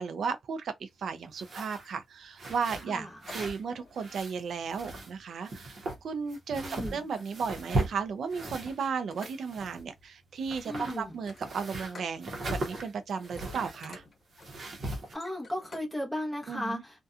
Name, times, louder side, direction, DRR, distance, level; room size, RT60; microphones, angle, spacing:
voice 1, 0.0-6.6 6.9-14.0 16.5-16.8, right 5 dB, 70° right, 0.4 m, -35 dB
sound 1, 1.3-1.9 2.4-3.6 3.9-5.2 5.5-8.9 9.2-10.1 10.4-13.9 14.3-15.1, right 2 dB, 50° right, 0.8 m, -38 dB
voice 2, 2.9-3.3 6.5-7.1 10.6-11.2 15.1-17.0, left 1 dB, ahead, 0.8 m, -36 dB
sound 2, 3.1-4.1 5.2-5.4 6.6-6.7 7.0-8.0 8.7-9.7 11.1-12.2 12.6-12.9 13.1-15.9 16.3-16.4, left 3 dB, 40° left, 1.2 m, -52 dB
2.6 x 2.2 x 2.3 m
wide cardioid pair, 170°, 0 cm